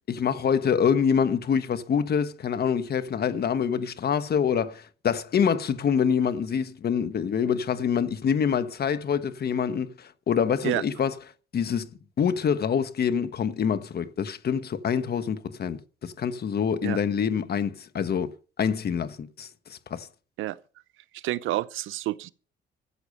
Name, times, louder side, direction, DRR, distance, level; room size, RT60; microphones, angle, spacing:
voice 1, 0.1-11.2 11.5-11.9 12.2-18.3 18.6-20.1, left 7 dB, 55° left, 1.2 m, -26 dB
voice 2, 21.1-22.3, right 15 dB, 90° right, 0.7 m, -29 dB
14.0 x 8.0 x 6.6 m
cardioid pair, 90°, 20 cm